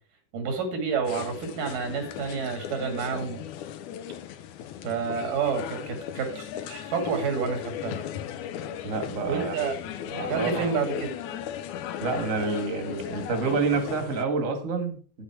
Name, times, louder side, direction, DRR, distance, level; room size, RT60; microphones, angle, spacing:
voice 1, 0.3-3.4 4.8-7.9 9.3-9.7 10.2-11.1, right 6 dB, 90° right, 4 dB, 3.9 m, -29 dB
sound 1, 1.0-14.2, left 10 dB, 75° left, 2.1 m, -36 dB
voice 2, 8.8-9.7 10.1-10.7 12.0-15.2, right 4 dB, 35° right, 6 dB, 1.4 m, -28 dB
9.9 x 8.2 x 4.4 m, 0.40 s
omnidirectional pair, 3.7 m